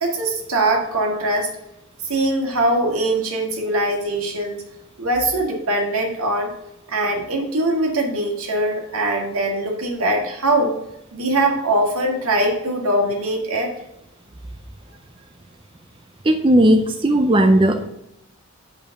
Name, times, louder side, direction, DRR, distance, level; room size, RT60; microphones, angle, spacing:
voice 1, 0.0-1.5 2.1-4.6 5.0-6.5 6.9-10.8 11.1-13.7, right 1 dB, 75° right, 1 dB, 1.9 m, -22 dB
voice 2, 16.2-17.9, right 1 dB, 25° right, 5 dB, 0.4 m, -16 dB
6.9 x 5.2 x 5.8 m, 0.87 s
head